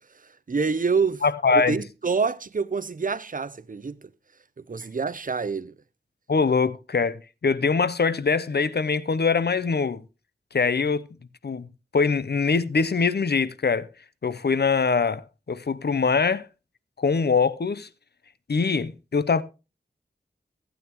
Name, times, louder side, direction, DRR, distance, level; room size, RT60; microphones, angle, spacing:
voice 1, 0.5-1.2 1.5-4.0 4.7-5.7, right 5 dB, 50° right, 0.6 m, -26 dB
voice 2, 1.2-1.8 6.3-10.0 10.5-11.0 11.4-11.7 11.9-13.9 14.2-15.2 15.5-16.4 17.0-17.9 18.5-19.4, left 5 dB, 65° left, 0.7 m, -23 dB
15.5 x 8.7 x 3.0 m
wide cardioid pair, 60°, 18 cm